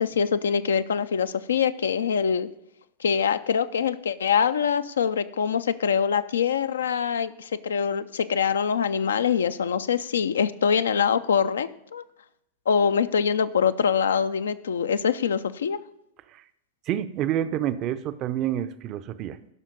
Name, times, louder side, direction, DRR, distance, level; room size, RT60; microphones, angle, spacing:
voice 1, 0.0-2.5 3.0-12.0 12.7-15.8, left 7 dB, 65° left, 13 dB, 0.4 m, -24 dB
voice 2, 16.9-19.5, right 11 dB, 35° right, 13 dB, 0.5 m, -28 dB
12.5 x 5.7 x 5.2 m, 0.82 s
figure-of-eight pair, 90°, 0 cm